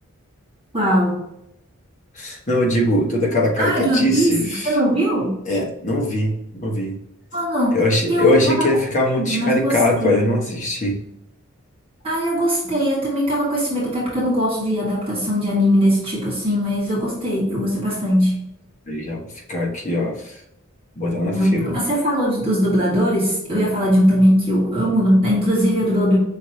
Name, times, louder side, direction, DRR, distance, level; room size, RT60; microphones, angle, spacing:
voice 1, 0.7-1.2 3.6-4.3 4.6-5.3 7.3-7.8 8.1-8.6 9.2-10.3 12.0-18.4 21.4-26.2, equal, 25° right, -6 dB, 1.6 m, -20 dB
voice 2, 2.1-4.8 5.4-7.0 7.7-11.0 18.9-19.2 19.5-20.4 21.0-21.7, left 1 dB, 35° left, -1 dB, 1.1 m, -21 dB
5.6 x 3.2 x 2.7 m, 0.81 s
head